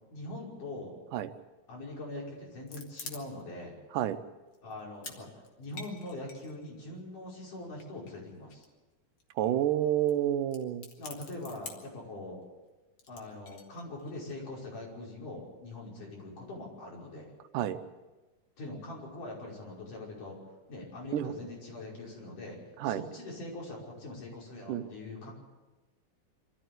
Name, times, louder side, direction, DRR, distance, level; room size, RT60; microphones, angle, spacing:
voice 1, 0.1-1.0 1.7-3.8 4.6-5.3 5.6-8.6 11.0-12.4 13.1-17.3 18.6-20.4 20.7-25.3, left 2 dB, 80° left, -3 dB, 7.1 m, -42 dB
sound 1, 2.4-3.6 4.0-4.1 4.5-5.2 5.4-7.0 7.8-8.9 9.2-9.3 9.5-9.6 10.1-10.2 10.4-12.0 13.0-14.3, left 4 dB, 45° left, 2.5 m, -47 dB
voice 2, 9.4-10.9 17.5-17.8 21.1-21.4 22.8-23.0 24.7-24.8, right 11 dB, 90° right, 10 dB, 2.5 m, -29 dB
25.0 x 14.0 x 8.1 m, 1.2 s
omnidirectional pair, 3.6 m